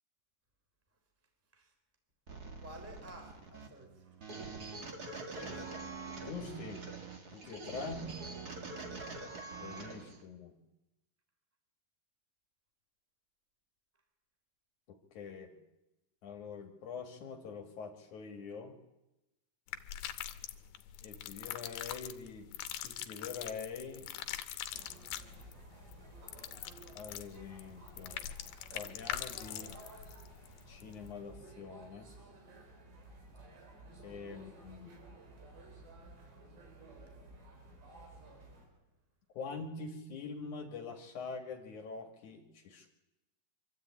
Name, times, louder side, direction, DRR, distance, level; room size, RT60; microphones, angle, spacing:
sound 1, 2.3-10.2, right 4 dB, 45° right, 1.3 m, -45 dB
voice 1, 2.6-4.3 5.0-5.9 8.0-8.7 34.3-34.4 34.8-34.9 36.2-36.3 37.1-37.2 38.3-38.8, right 1 dB, 5° right, 4 dB, 2.8 m, -54 dB
voice 2, 6.2-6.8 7.3-8.1 9.6-10.6 15.1-15.5 16.2-18.7 21.0-22.5 22.8-24.1 26.9-28.2 28.7-29.7 30.7-32.1 34.0-35.0 39.3-42.9, left 5 dB, 55° left, 4 dB, 2.7 m, -44 dB
sound 2, 19.7-31.1, left 12 dB, 75° left, 2.7 m, -43 dB
sound 3, 24.7-38.7, right 2 dB, 85° right, 6.5 m, -54 dB
25.0 x 13.0 x 8.5 m, 0.95 s
omnidirectional pair, 4.8 m